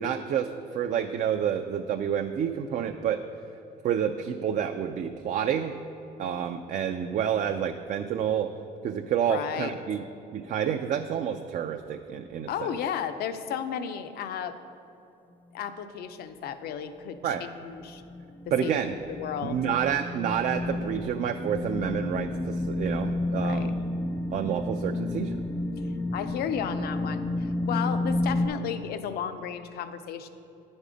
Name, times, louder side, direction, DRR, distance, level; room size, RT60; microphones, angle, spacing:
voice 1, 0.0-3.2 3.8-5.8 6.2-8.5 8.8-10.0 10.3-12.7 17.2-17.4 18.5-18.9 19.4-23.7 24.3-25.4, right 8 dB, 50° right, 6 dB, 0.4 m, -29 dB
voice 2, 9.3-9.7 12.5-14.6 15.5-18.0 18.6-18.7 19.1-19.6 23.4-23.7 26.1-30.3, left 8 dB, 70° left, 10 dB, 0.6 m, -33 dB
sound 1, 17.1-28.5, left 2 dB, 10° left, 0.4 m, -31 dB
9.0 x 5.3 x 5.0 m, 2.8 s
cardioid pair, 110°, 17 cm